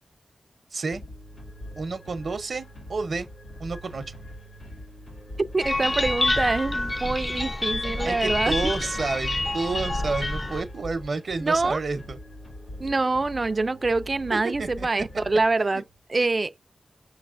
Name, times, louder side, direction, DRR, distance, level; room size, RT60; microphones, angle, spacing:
voice 1, 0.7-1.0 1.8-3.3 3.6-4.2 8.0-12.2 14.3-14.9 15.7-15.8, right 4 dB, 75° right, 0.7 m, -30 dB
sound 1, 0.9-16.0, left 1 dB, 85° left, 2.0 m, -43 dB
voice 2, 5.5-8.5 11.4-11.8 12.8-15.8 16.1-16.5, right 3 dB, 45° right, 0.4 m, -25 dB
sound 2, 5.6-10.6, left 2 dB, 30° left, 0.5 m, -27 dB
5.9 x 3.1 x 2.5 m
wide cardioid pair, 85°, 0 cm